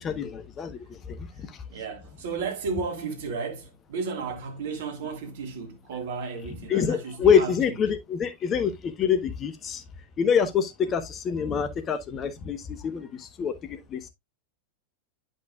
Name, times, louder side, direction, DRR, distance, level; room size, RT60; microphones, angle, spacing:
voice 1, 0.0-1.6 6.7-9.8 10.2-14.1, left 7 dB, 25° left, 1.0 m, -26 dB
voice 2, 1.4-7.8, right 5 dB, 55° right, 1.9 m, -34 dB
10.5 x 5.4 x 2.3 m
figure-of-eight pair, 90°, 0 cm